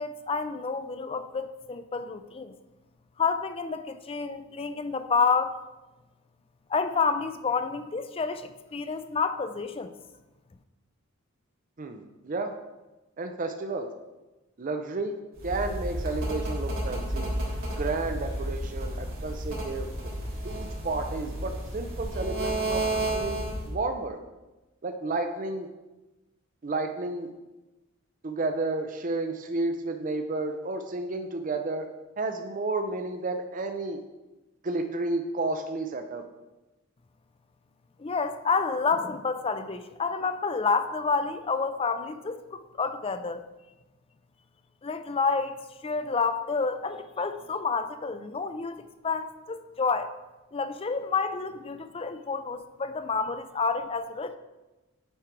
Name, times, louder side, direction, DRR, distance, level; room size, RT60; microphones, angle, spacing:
voice 1, 0.0-2.5 3.2-5.6 6.7-9.9 38.0-43.4 44.8-45.5 45.8-50.1 50.5-54.3, left 4 dB, 25° left, 10 dB, 0.4 m, -29 dB
voice 2, 11.8-12.5 13.2-13.9 14.6-17.3 17.8-19.9 20.4-24.2 24.8-25.7 26.6-27.3 28.2-31.9 32.2-34.0 34.6-36.2, right 3 dB, 40° right, 6 dB, 0.5 m, -31 dB
sound 1, 15.4-23.7, right 1 dB, 65° right, 2.8 m, -32 dB
8.7 x 4.5 x 4.6 m, 1.1 s
head